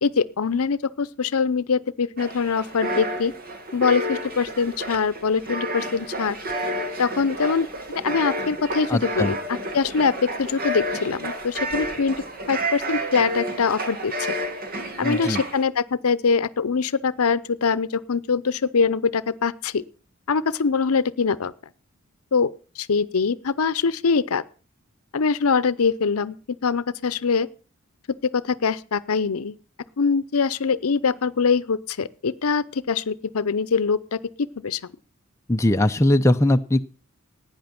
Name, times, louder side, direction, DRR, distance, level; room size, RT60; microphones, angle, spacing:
voice 1, 0.0-3.3 3.7-6.4 7.0-7.7 8.0-14.4 15.0-19.8 20.3-21.5 22.3-24.4 25.1-26.4 26.6-27.5 28.3-29.6 30.0-34.8, left 5 dB, 85° left, 18 dB, 0.7 m, -23 dB
sound 1, 2.2-15.6, right 1 dB, 45° right, 1.7 m, -30 dB
voice 2, 8.9-9.3 15.0-15.4 35.5-36.8, left 1 dB, 15° left, 6 dB, 0.5 m, -20 dB
15.5 x 9.5 x 5.9 m, 0.40 s
head